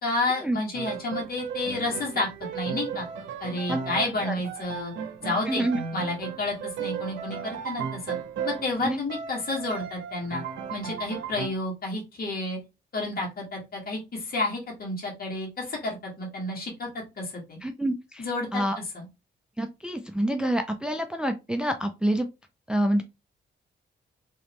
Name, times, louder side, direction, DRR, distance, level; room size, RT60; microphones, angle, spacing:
voice 1, 0.0-2.3 2.5-3.0 3.4-4.9 5.2-5.6 5.9-8.2 8.4-10.4 10.7-12.6 12.9-17.6 18.2-18.6 18.9-19.1, left 2 dB, 50° left, -1 dB, 1.6 m, -30 dB
Piano, 0.7-8.8 9.1-11.5, right 7 dB, 90° right, 0.7 m, -35 dB
voice 2, 5.5-5.8 8.8-9.0 17.6-18.3 18.5-18.8 19.6-22.3 22.7-23.0, right 1 dB, 5° right, 6 dB, 0.4 m, -27 dB
3.0 x 3.0 x 2.9 m, 0.25 s
cardioid pair, 95°, 19 cm